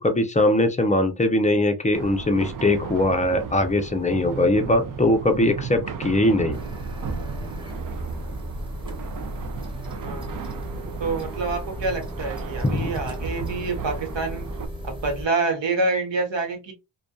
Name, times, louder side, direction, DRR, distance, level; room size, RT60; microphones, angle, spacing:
voice 1, 0.0-6.6 12.7-12.9, left 1 dB, 15° left, 0.5 m, -21 dB
sound 1, 1.9-14.7, right 6 dB, 45° right, 0.5 m, -35 dB
sound 2, 6.5-15.3, equal, 10° right, 1.0 m, -35 dB
voice 2, 11.0-14.5 14.8-16.7, right 3 dB, 65° right, 1.1 m, -27 dB
2.5 x 2.2 x 2.2 m
cardioid pair, 75°, 47 cm